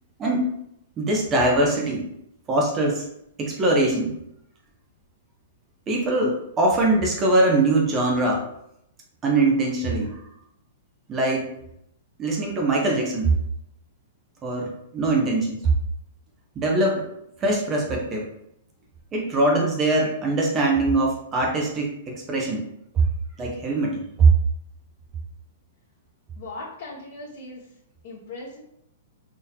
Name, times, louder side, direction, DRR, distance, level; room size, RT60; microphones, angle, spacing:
voice 1, 0.2-0.6 1.0-2.1 2.5-3.1 3.4-4.2 5.9-8.4 9.2-10.2 11.1-11.5 12.2-13.4 14.4-15.7 16.6-17.1 17.4-18.3 19.1-22.7 23.4-24.3, right 2 dB, 25° right, 0 dB, 0.8 m, -22 dB
voice 2, 26.4-27.7 28.0-28.6, left 2 dB, 55° left, -7 dB, 1.3 m, -38 dB
4.0 x 3.1 x 2.8 m, 0.76 s
hypercardioid pair, 125°, 0 cm